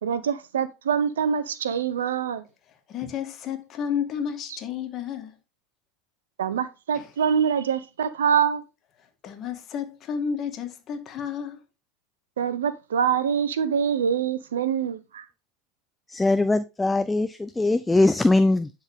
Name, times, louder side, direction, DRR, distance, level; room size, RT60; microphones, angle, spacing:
voice 1, 0.0-2.4 6.4-8.6 12.4-15.3, right 7 dB, 80° right, 0.7 m, -25 dB
voice 2, 2.9-5.4 6.9-7.1 9.2-11.6, left 7 dB, 40° left, 1.7 m, -31 dB
voice 3, 16.1-18.7, left 2 dB, 10° left, 0.4 m, -21 dB
10.5 x 3.9 x 3.6 m
hypercardioid pair, 85°, 0 cm